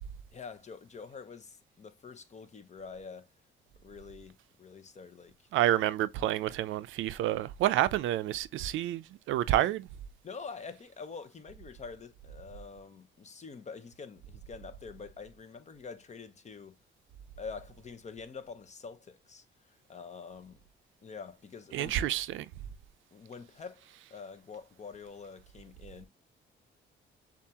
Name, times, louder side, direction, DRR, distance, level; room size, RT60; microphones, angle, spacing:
voice 1, 0.3-3.3 3.8-5.4 5.8-5.9 6.2-6.3 9.6-9.7 10.2-16.8 17.4-20.6 21.0-22.0 23.1-26.1, left 5 dB, 35° left, 0.9 m, -46 dB
voice 2, 5.5-9.8 21.7-22.5, right 13 dB, 80° right, 0.4 m, -29 dB
7.1 x 2.5 x 2.8 m
cardioid pair, 90°, 20 cm